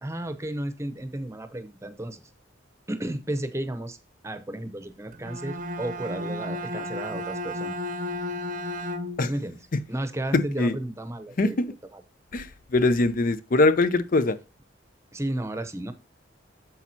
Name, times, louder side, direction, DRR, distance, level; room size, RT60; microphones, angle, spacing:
voice 1, 0.0-2.2 2.9-4.0 4.2-7.8 9.2-9.6 9.9-11.6 11.9-12.0 15.1-15.9, right 1 dB, 15° right, 0.8 m, -33 dB
Bowed string instrument, 5.1-9.4, left 1 dB, 45° right, 0.8 m, -33 dB
voice 2, 10.3-10.7 11.4-11.7 12.3-14.4, left 2 dB, 50° left, 0.5 m, -22 dB
8.6 x 7.1 x 2.8 m
head